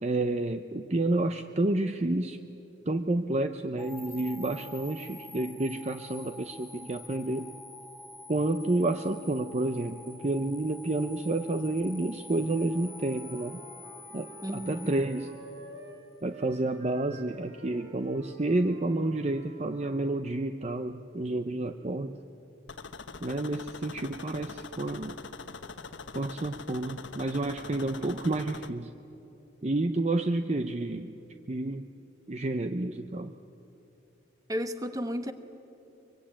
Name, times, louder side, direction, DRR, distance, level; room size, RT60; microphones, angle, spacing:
voice 1, 0.0-2.4 2.9-7.5 8.3-13.6 14.1-15.3 16.2-22.2 23.2-25.2 26.1-28.9 29.6-31.1 31.5-31.9 32.3-33.3, right 2 dB, 35° right, 8 dB, 0.7 m, -30 dB
sound 1, 3.8-16.0, left 2 dB, ahead, 1.8 m, -47 dB
Wind instrument woodwind instrument, 12.4-16.0 16.3-20.2, right 2 dB, 70° right, 7.7 m, -50 dB
voice 2, 14.4-14.9 34.5-35.3, equal, 20° right, 8 dB, 1.2 m, -33 dB
sound 2, 22.7-28.7, left 4 dB, 70° left, 1.0 m, -43 dB
24.0 x 23.5 x 8.8 m, 2.9 s
head